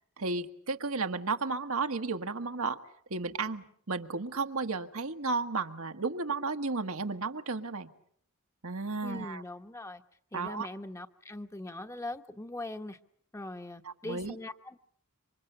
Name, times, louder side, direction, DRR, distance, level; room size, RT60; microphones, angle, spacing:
voice 1, 0.2-2.8 3.1-7.9 8.6-9.4 10.3-10.7 13.8-14.3, right 4 dB, 70° right, 7 dB, 1.5 m, -33 dB
voice 2, 9.0-10.0 10.3-13.0 13.3-14.8, left 1 dB, 15° left, 7 dB, 1.1 m, -41 dB
27.5 x 25.0 x 6.9 m, 0.65 s
head